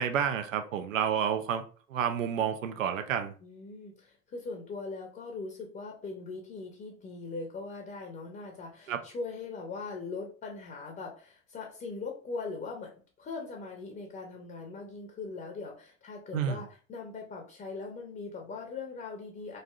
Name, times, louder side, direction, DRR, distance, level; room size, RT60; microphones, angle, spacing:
voice 1, 0.0-1.6 1.9-3.3 8.9-9.0 16.3-16.6, right 8 dB, 80° right, 0.5 m, -29 dB
voice 2, 3.4-19.6, left 4 dB, 20° left, 0.6 m, -40 dB
3.2 x 2.6 x 2.3 m
figure-of-eight pair, 75°, 39 cm